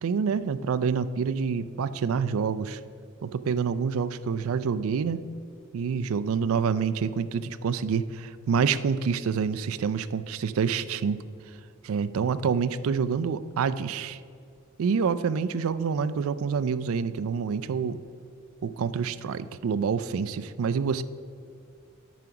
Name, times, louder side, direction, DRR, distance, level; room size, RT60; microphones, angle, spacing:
voice 1, 0.0-2.8 3.2-5.2 5.7-11.2 11.8-14.2 14.8-18.0 18.6-21.0, right 6 dB, 65° right, 14 dB, 0.4 m, -27 dB
9.4 x 5.1 x 5.8 m, 2.3 s
head